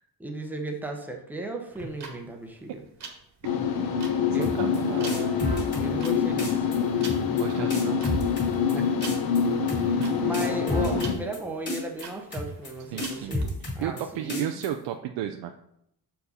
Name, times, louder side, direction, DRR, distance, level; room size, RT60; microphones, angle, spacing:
voice 1, 0.2-2.8 4.3-4.8 5.8-7.0 7.5-7.8 8.7-8.9 9.9-14.6, right 2 dB, 5° right, 2 dB, 0.7 m, -36 dB
sound 1, 1.7-13.4, right 4 dB, 40° right, 1.2 m, -44 dB
sound 2, 3.4-11.1, left 7 dB, 60° left, 0.8 m, -26 dB
sound 3, 4.4-4.8 5.1-6.1 6.4-6.8 7.0-7.4 7.7-8.7 9.0-9.4 9.7-10.1 10.3-11.4 11.7-12.0 12.3-12.7 13.0-14.0 14.3-14.7, left 1 dB, 25° left, 2.0 m, -31 dB
voice 2, 4.4-5.4 7.4-8.0 12.9-13.4 13.8-15.6, right 11 dB, 85° right, 5 dB, 0.5 m, -33 dB
6.6 x 4.7 x 4.2 m, 0.76 s
cardioid pair, 175°, 42 cm